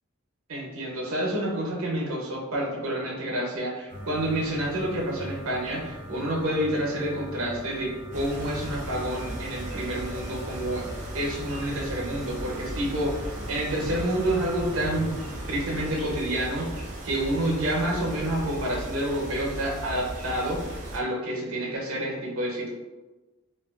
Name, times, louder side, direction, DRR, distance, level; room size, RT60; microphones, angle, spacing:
voice 1, 0.5-10.9 11.1-15.1 15.5-22.7, right 1 dB, 80° right, -2 dB, 0.7 m, -29 dB
sound 1, 3.9-16.3, equal, 40° left, 0.8 m, -41 dB
sound 2, 8.1-21.0, right 1 dB, 35° right, 0.4 m, -37 dB
2.5 x 2.2 x 2.4 m, 1.2 s
head